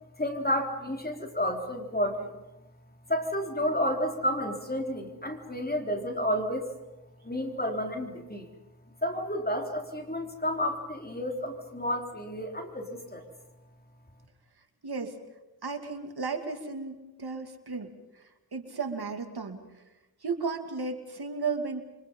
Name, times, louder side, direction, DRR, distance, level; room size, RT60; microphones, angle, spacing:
voice 1, 0.2-2.4 3.1-6.7 7.2-8.5 9.0-13.3, equal, 25° left, 3 dB, 4.0 m, -31 dB
voice 2, 14.8-15.2 15.6-17.9 18.5-19.6 20.2-21.8, right 4 dB, 85° right, 5 dB, 2.6 m, -34 dB
28.5 x 24.5 x 5.6 m, 1.0 s
wide cardioid pair, 60°, 37 cm